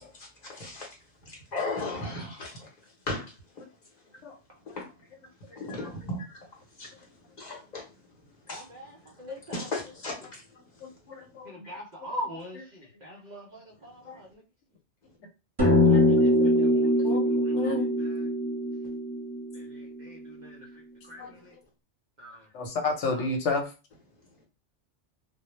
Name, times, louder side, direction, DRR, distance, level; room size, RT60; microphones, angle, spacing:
voice 1, 1.5-2.5 3.1-3.2 5.6-6.2 6.8-6.9 7.4-7.8 8.5-8.6 9.5-10.1, left 2 dB, 45° left, 0.8 m, -34 dB
voice 2, 8.5-8.9 9.2-9.7 11.7-12.6 13.0-13.9 15.8-16.3 16.6-16.9 20.1-20.2 21.1-21.2 22.2-22.4, equal, 55° right, 0.5 m, -39 dB
voice 3, 10.8-11.7 12.0-12.1 12.5-12.6 14.0-14.2 15.9-16.1 16.4-16.5 17.0-17.9 21.2-21.3 22.5-23.7, left 3 dB, 75° left, 0.9 m, -32 dB
sound 1, 15.6-20.2, left 1 dB, 25° right, 0.7 m, -23 dB
2.1 x 2.0 x 2.9 m
omnidirectional pair, 1.2 m